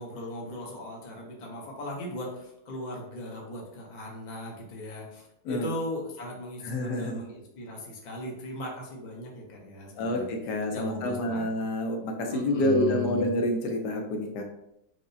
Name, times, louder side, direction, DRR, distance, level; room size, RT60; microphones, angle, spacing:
voice 1, 0.0-10.2 10.7-11.4 12.3-13.3, left 2 dB, 40° left, -2 dB, 0.6 m, -38 dB
voice 2, 6.6-7.2 9.9-14.4, left 1 dB, 75° left, 2 dB, 1.2 m, -28 dB
4.6 x 2.1 x 2.6 m, 0.82 s
omnidirectional pair, 1.8 m